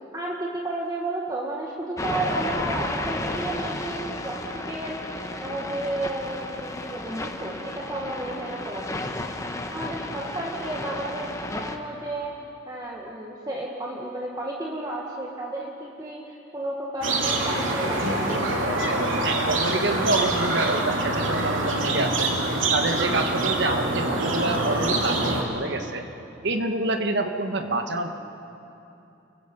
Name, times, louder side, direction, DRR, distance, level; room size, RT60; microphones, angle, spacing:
voice 1, 0.1-5.1 5.4-9.3 9.7-12.3 12.7-18.4, right 1 dB, 20° right, -2 dB, 1.7 m, -32 dB
sound 1, 2.0-11.8, left 1 dB, 15° left, 1.2 m, -33 dB
sound 2, 17.0-25.4, right 2 dB, 80° right, 2.8 m, -25 dB
voice 2, 19.2-22.3 22.7-26.0 26.4-28.1, right 2 dB, 60° right, 6 dB, 1.5 m, -27 dB
29.5 x 23.0 x 5.4 m, 2.9 s
head